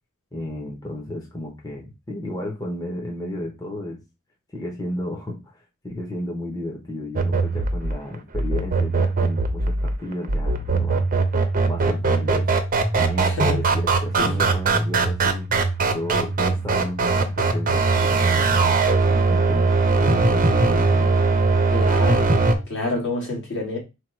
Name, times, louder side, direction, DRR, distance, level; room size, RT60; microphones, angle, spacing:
voice 1, 0.3-4.0 4.5-11.1 11.7-12.5 12.9-15.5 15.9-19.7 20.0-21.2, left 1 dB, 20° left, 0.9 m, -32 dB
sound 1, 7.2-22.6, right 3 dB, 40° right, 0.6 m, -20 dB
voice 2, 13.2-13.6 14.1-14.3 21.7-22.3 22.7-23.8, left 2 dB, 60° left, 1.8 m, -27 dB
4.5 x 2.3 x 4.5 m
head